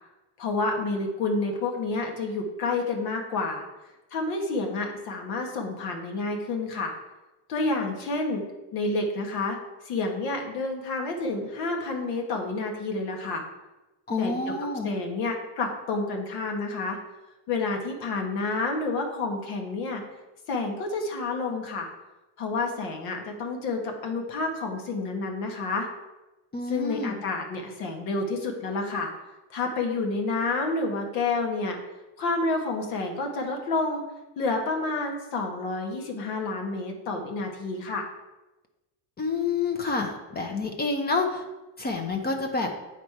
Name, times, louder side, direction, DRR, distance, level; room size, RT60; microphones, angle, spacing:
voice 1, 0.4-3.7 4.1-6.9 7.5-8.4 8.7-9.6 9.8-13.4 14.2-14.3 14.8-17.0 17.5-20.0 20.5-21.9 22.4-25.9 26.7-29.1 29.5-31.8 32.2-34.0 34.4-38.1, left 3 dB, 80° left, 2 dB, 1.6 m, -29 dB
voice 2, 14.1-14.9 26.5-27.2 39.2-41.4 41.8-42.7, left 3 dB, 25° left, 4 dB, 0.8 m, -28 dB
8.3 x 4.1 x 4.7 m, 1.1 s
cardioid pair, 125°, 37 cm